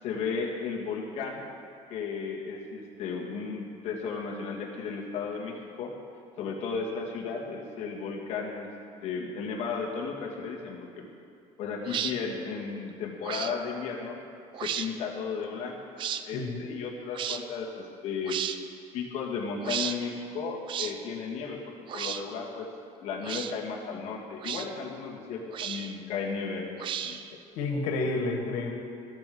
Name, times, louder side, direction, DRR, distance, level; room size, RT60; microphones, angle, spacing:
voice 1, 0.0-1.4 1.9-5.9 6.4-8.7 9.0-11.1 11.6-14.2 14.6-15.8 16.2-18.4 18.9-21.6 21.9-22.7 23.0-26.7 27.0-27.2, left 5 dB, 50° left, -2 dB, 2.3 m, -34 dB
sound 1, 11.9-12.1 13.2-13.5 14.5-14.9 16.0-16.2 17.1-17.4 18.3-18.6 19.6-20.0 20.7-20.9 21.9-22.2 23.2-23.5 24.4-24.7 25.5-26.0 26.8-27.3, right 9 dB, 35° right, 0.5 m, -33 dB
voice 2, 27.6-28.7, left 3 dB, 85° left, 2 dB, 2.1 m, -30 dB
14.0 x 8.9 x 7.2 m, 2.5 s
cardioid pair, 175°, 14 cm